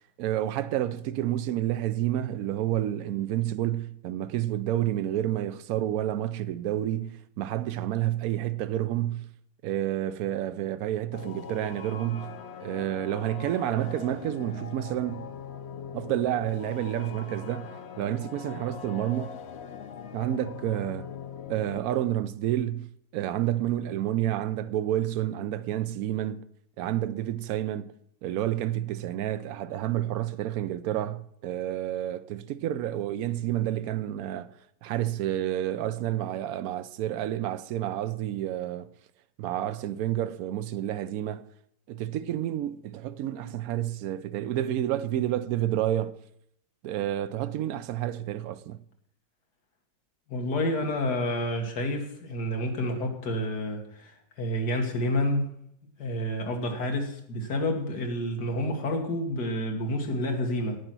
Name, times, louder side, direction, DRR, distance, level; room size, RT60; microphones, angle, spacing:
voice 1, 0.2-9.2 9.6-15.3 15.9-19.4 20.1-21.1 21.5-26.4 26.8-27.9 28.2-34.5 34.8-38.9 39.4-41.4 41.9-46.2 46.8-48.8, right 12 dB, 70° right, 0.9 m, -29 dB
sound 1, 11.1-21.8, left 7 dB, 90° left, 0.5 m, -41 dB
voice 2, 50.3-54.1 54.4-55.5 56.0-60.8, left 1 dB, 60° left, 2.2 m, -29 dB
11.0 x 9.0 x 6.1 m
omnidirectional pair, 2.0 m